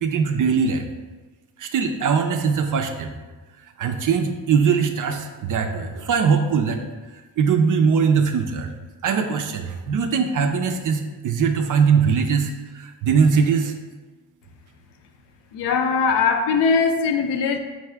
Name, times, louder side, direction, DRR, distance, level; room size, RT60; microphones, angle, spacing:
voice 1, 0.0-0.9 1.6-3.1 3.8-6.8 7.4-8.7 9.0-13.7, right 6 dB, 45° right, 5 dB, 0.4 m, -21 dB
voice 2, 15.5-17.6, left 5 dB, 60° left, 5 dB, 0.6 m, -20 dB
4.7 x 2.6 x 3.4 m, 1.3 s
supercardioid pair, 85°, 47 cm